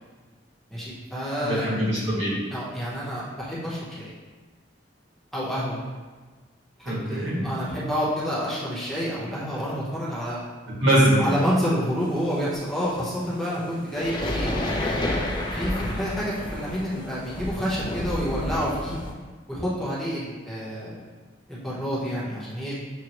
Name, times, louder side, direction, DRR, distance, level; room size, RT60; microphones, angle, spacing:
voice 1, 0.7-1.7 2.5-4.1 5.3-5.8 6.8-10.4 11.2-14.5 15.5-19.0 19.5-21.0 21.5-22.7, equal, ahead, -8 dB, 0.8 m, -29 dB
voice 2, 1.4-2.3 6.8-7.4 10.8-11.4, right 1 dB, 80° right, -7 dB, 1.5 m, -22 dB
sound 1, 12.0-19.1, left 1 dB, 25° left, 0.4 m, -30 dB
6.2 x 2.2 x 2.9 m, 1.4 s
head